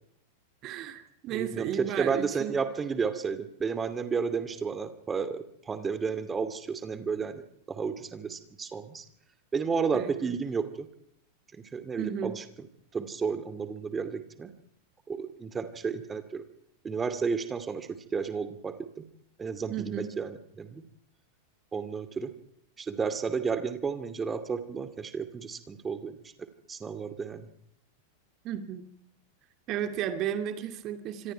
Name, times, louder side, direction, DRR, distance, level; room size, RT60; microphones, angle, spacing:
voice 1, 0.6-2.6 9.9-10.3 12.0-12.3 19.7-20.1 28.4-28.9 29.7-31.3, right 10 dB, 35° right, 8 dB, 2.4 m, -34 dB
voice 2, 1.3-7.4 7.7-9.0 9.5-10.9 11.7-12.4 12.9-14.5 15.1-16.4 16.8-19.1 19.4-20.8 21.7-22.3 22.8-27.5, right 5 dB, 15° right, 11 dB, 2.6 m, -32 dB
26.0 x 26.0 x 4.7 m, 0.68 s
figure-of-eight pair, 90°, 0 cm